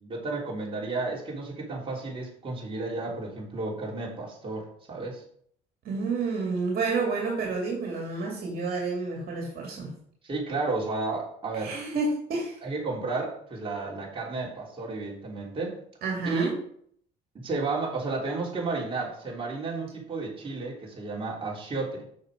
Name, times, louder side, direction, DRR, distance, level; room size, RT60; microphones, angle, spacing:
voice 1, 0.0-5.2 10.2-11.8 12.6-15.8 16.2-16.5 17.4-22.0, right 3 dB, 30° right, -3 dB, 3.3 m, -32 dB
voice 2, 5.8-9.9 11.5-12.6 16.0-16.5, right 3 dB, 65° right, -1 dB, 2.4 m, -29 dB
6.8 x 6.5 x 5.0 m, 0.63 s
cardioid pair, 110°, 17 cm